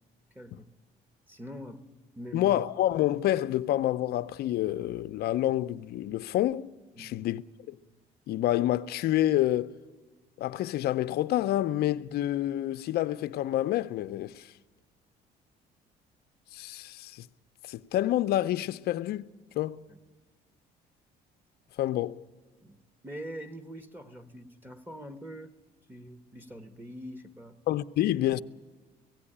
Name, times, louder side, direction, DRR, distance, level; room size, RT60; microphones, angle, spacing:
voice 1, 0.3-0.7 1.3-1.9 2.2-2.5 7.0-7.2 19.9-20.0 22.6-22.8 23.0-25.5 25.9-27.6, equal, 10° right, 1.1 m, -43 dB
voice 2, 2.3-6.7 7.0-7.4 7.7-7.8 8.3-9.7 10.4-14.5 16.5-17.3 17.6-19.3 19.6-19.8 21.8-22.2 27.7-28.4, left 13 dB, 70° left, 0.6 m, -28 dB
17.0 x 16.0 x 9.9 m
cardioid pair, 110°, 17 cm